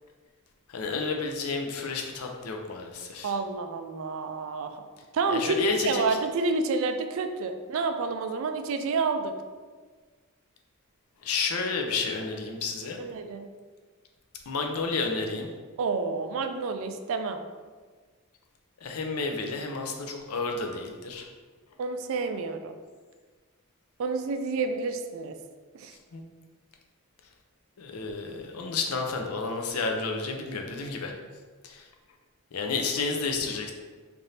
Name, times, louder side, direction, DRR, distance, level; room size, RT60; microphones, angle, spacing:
voice 1, 0.7-3.3 5.3-6.2 11.2-13.0 14.5-15.5 18.8-21.3 26.1-26.2 27.8-31.1 31.6-31.9 32.5-33.7, left 4 dB, 85° left, 3 dB, 0.5 m, -31 dB
voice 2, 3.2-4.9 5.1-9.3 13.0-13.5 15.8-17.4 21.8-22.7 24.0-25.4 25.7-25.9, right 4 dB, 65° right, 7 dB, 0.3 m, -29 dB
3.3 x 2.6 x 4.1 m, 1.4 s
head